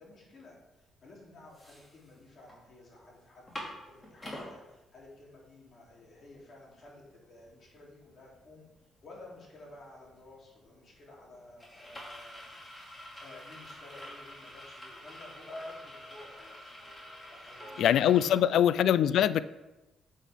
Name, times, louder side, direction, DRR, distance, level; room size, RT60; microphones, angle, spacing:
voice 1, 0.0-8.6 9.0-16.8 17.3-17.9 18.1-19.1, left 2 dB, 50° left, -3 dB, 3.3 m, -53 dB
sound 1, 0.9-1.0 1.4-2.6 2.9-3.0 3.3-4.5 5.1-5.2 5.5-18.3, left 1 dB, 25° left, 2.6 m, -47 dB
voice 2, 17.8-19.4, left 10 dB, 75° left, 17 dB, 0.3 m, -23 dB
9.8 x 7.5 x 3.6 m, 1.0 s
cardioid pair, 90°, 0 cm